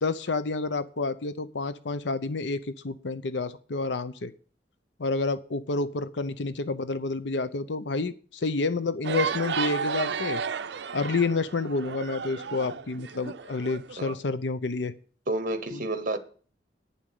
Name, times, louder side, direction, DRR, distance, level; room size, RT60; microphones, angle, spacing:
voice 1, 0.0-4.3 5.0-10.4 10.9-14.9 15.7-15.8, left 3 dB, 90° left, 0.7 m, -29 dB
sound 1, 9.0-14.2, right 6 dB, 70° right, 0.5 m, -33 dB
voice 2, 15.3-16.2, right 2 dB, 50° right, 1.1 m, -30 dB
9.6 x 7.2 x 6.7 m
head